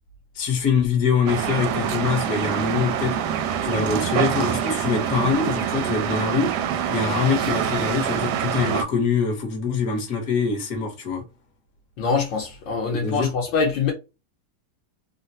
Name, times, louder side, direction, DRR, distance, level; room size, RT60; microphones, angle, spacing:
voice 1, 0.3-3.1 3.6-6.5 6.9-11.2 12.9-13.3, left 5 dB, 55° left, 1.5 m, -24 dB
sound 1, 1.3-8.8, right 9 dB, 75° right, 1.0 m, -25 dB
voice 2, 12.0-13.9, left 5 dB, 70° left, 1.4 m, -24 dB
3.7 x 2.1 x 2.6 m
omnidirectional pair, 2.1 m